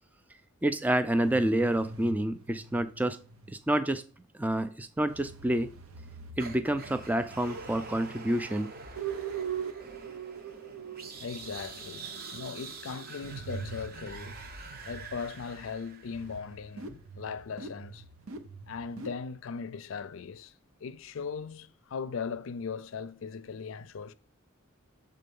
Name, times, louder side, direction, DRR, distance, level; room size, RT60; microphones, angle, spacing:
voice 1, 0.6-3.2 3.5-4.0 4.4-5.7 6.4-8.7, right 1 dB, 10° right, 0.3 m, -28 dB
sound 1, 1.2-3.8 5.1-8.3 9.0-15.4 16.1-19.1, right 6 dB, 90° right, 0.8 m, -43 dB
sound 2, 6.4-16.6, right 3 dB, 45° right, 0.8 m, -45 dB
voice 2, 11.2-14.4 14.8-18.0 18.7-20.5 20.8-24.1, left 5 dB, 70° left, 0.4 m, -39 dB
6.6 x 3.7 x 5.4 m
head